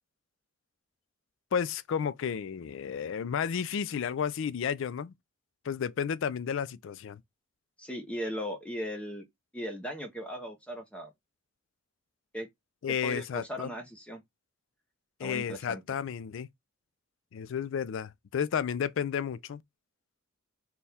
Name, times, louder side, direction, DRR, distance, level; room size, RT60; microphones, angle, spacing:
voice 1, 1.5-5.1 5.7-7.2 12.8-13.7 15.2-16.5 17.3-19.6, left 7 dB, 65° left, 0.4 m, -32 dB
voice 2, 7.8-9.2 9.5-11.1 12.3-12.5 13.0-14.2 15.2-15.8, equal, 5° left, 0.8 m, -37 dB
4.3 x 2.3 x 3.4 m
head